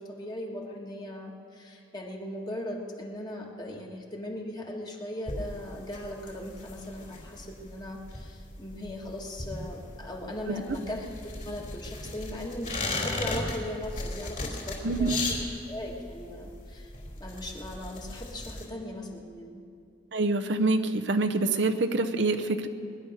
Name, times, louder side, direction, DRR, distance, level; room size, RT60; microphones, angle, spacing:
voice 1, 0.0-11.1 11.4-15.2 15.7-16.9 17.2-19.6, left 1 dB, 20° left, 0 dB, 1.7 m, -38 dB
sound 1, 5.3-18.7, left 2 dB, 40° left, 3.4 m, -36 dB
voice 2, 14.8-15.2 20.1-22.7, right 3 dB, 75° right, 7 dB, 0.8 m, -26 dB
20.5 x 11.0 x 6.6 m, 2.4 s
head